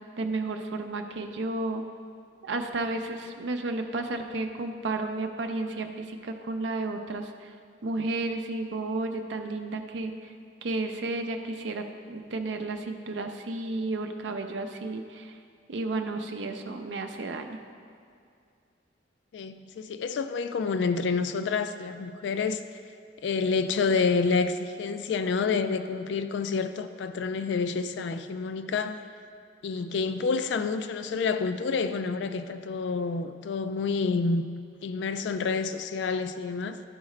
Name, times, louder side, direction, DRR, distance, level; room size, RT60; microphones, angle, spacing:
voice 1, 0.2-1.8 2.4-7.5 7.8-10.3 10.6-15.4 15.7-17.6, right 2 dB, 80° right, 5 dB, 0.5 m, -32 dB
voice 2, 19.3-22.6 23.2-29.0 29.6-34.5 34.8-36.8, left 4 dB, 70° left, 10 dB, 0.3 m, -28 dB
11.5 x 4.7 x 3.2 m, 2.4 s
head